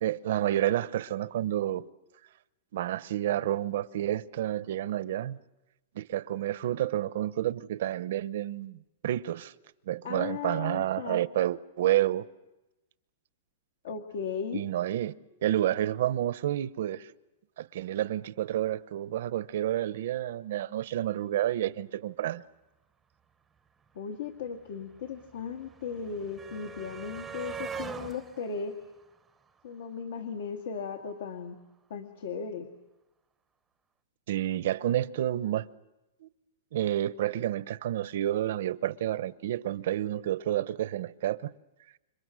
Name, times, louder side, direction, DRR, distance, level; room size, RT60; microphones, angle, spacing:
voice 1, 0.0-1.8 2.7-5.4 5.9-9.5 9.9-12.2 14.5-15.1 15.4-17.1 17.6-22.4 34.3-35.7 36.2-36.3 36.7-41.5, right 12 dB, 55° right, 0.8 m, -29 dB
voice 2, 10.0-11.2 13.8-14.6 24.0-28.8 29.6-31.6 31.9-32.7, left 6 dB, 65° left, 1.9 m, -36 dB
sound 1, 23.6-23.7 23.8-30.0 31.2-31.3 31.6-31.7, right 6 dB, 10° right, 0.8 m, -43 dB
29.5 x 25.5 x 6.3 m
supercardioid pair, 175°, 0 cm